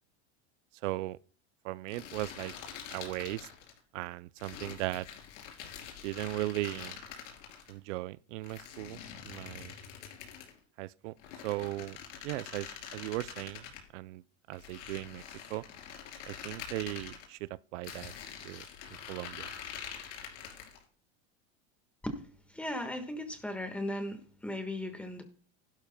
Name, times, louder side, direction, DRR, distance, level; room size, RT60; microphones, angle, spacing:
voice 1, 0.8-1.2 1.6-2.5 2.9-3.5 3.9-5.1 6.0-7.0 7.7-9.0 9.2-9.8 10.8-11.1 11.4-12.0 12.2-13.7 13.9-14.2 14.5-15.2 15.5-15.6 16.3-18.1 18.4-18.6 19.1-19.5, right 18 dB, 80° right, 0.5 m, -37 dB
sound 1, 1.9-3.8 4.4-7.7 8.4-10.6 11.2-13.8 14.5-17.2 17.8-20.8, left 8 dB, 85° left, 3.8 m, -45 dB
voice 2, 22.5-25.2, left 1 dB, 5° left, 1.4 m, -37 dB
15.5 x 12.0 x 2.2 m
supercardioid pair, 150°, 36 cm